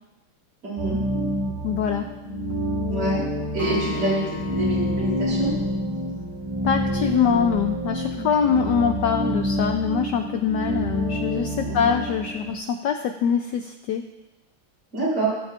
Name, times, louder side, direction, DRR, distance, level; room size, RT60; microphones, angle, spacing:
voice 1, 0.6-1.0 2.9-3.2 3.5-5.5 8.2-8.5 11.6-12.0 14.9-15.3, right 2 dB, 80° right, -9 dB, 4.2 m, -27 dB
sound 1, 0.8-12.5, equal, 25° right, 0.7 m, -28 dB
voice 2, 1.6-2.1 6.6-14.0, left 7 dB, 80° left, 5 dB, 0.9 m, -23 dB
Acoustic guitar, 3.6-6.9, left 3 dB, 55° left, 3.0 m, -36 dB
17.0 x 8.1 x 2.5 m, 1.0 s
omnidirectional pair, 2.4 m